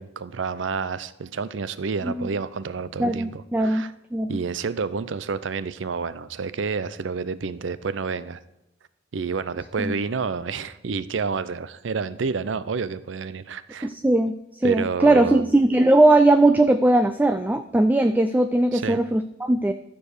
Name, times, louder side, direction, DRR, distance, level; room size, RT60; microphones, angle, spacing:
voice 1, 0.0-3.9 4.3-8.4 9.1-13.9 14.6-15.5 18.7-19.0, right 5 dB, 70° right, 15 dB, 0.5 m, -29 dB
voice 2, 3.0-3.8 4.1-4.4 9.8-9.9 13.8-19.7, right 2 dB, 10° right, 8 dB, 0.3 m, -19 dB
12.5 x 4.7 x 6.5 m, 0.90 s
head